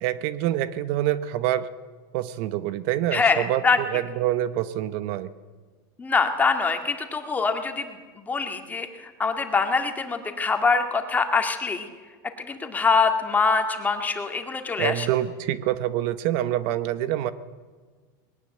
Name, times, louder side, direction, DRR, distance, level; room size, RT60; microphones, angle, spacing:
voice 1, 0.0-1.7 2.1-5.3 14.8-17.3, right 13 dB, 55° right, 14 dB, 0.9 m, -26 dB
voice 2, 3.1-3.8 6.0-11.9 12.4-15.1, left 4 dB, 15° left, 6 dB, 2.0 m, -24 dB
20.5 x 18.0 x 7.9 m, 1.5 s
supercardioid pair, 140°, 11 cm